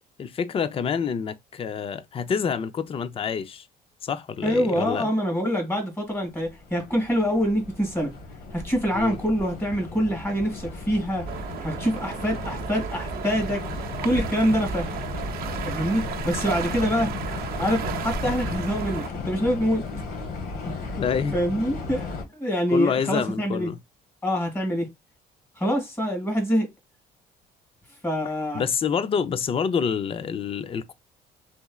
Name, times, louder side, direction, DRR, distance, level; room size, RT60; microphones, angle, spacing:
voice 1, 0.2-3.7 4.0-5.1 8.9-9.2 21.0-21.4 22.7-23.8 28.5-30.9, left 6 dB, 35° left, 0.5 m, -27 dB
voice 2, 4.4-8.1 8.5-13.6 14.0-14.9 15.7-17.1 17.6-19.8 20.7-20.8 21.3-23.7 24.2-24.9 25.6-26.7 28.0-28.6, equal, 15° left, 2.0 m, -25 dB
sound 1, 6.3-22.2, left 2 dB, 75° left, 1.3 m, -34 dB
sound 2, 11.3-19.1, right 10 dB, 65° right, 0.7 m, -35 dB
3.4 x 3.1 x 2.3 m
cardioid pair, 110°, 17 cm